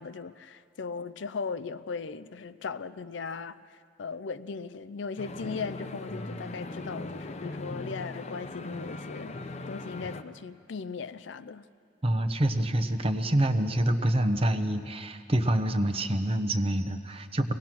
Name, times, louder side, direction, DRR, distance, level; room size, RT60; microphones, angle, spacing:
voice 1, 0.0-3.6 4.0-9.4 9.7-11.6, left 5 dB, 75° left, 0.5 m, -38 dB
sound 1, 5.2-10.2, left 2 dB, 35° left, 0.7 m, -39 dB
voice 2, 12.0-17.5, right 1 dB, 30° right, 0.9 m, -26 dB
23.5 x 18.0 x 6.1 m
head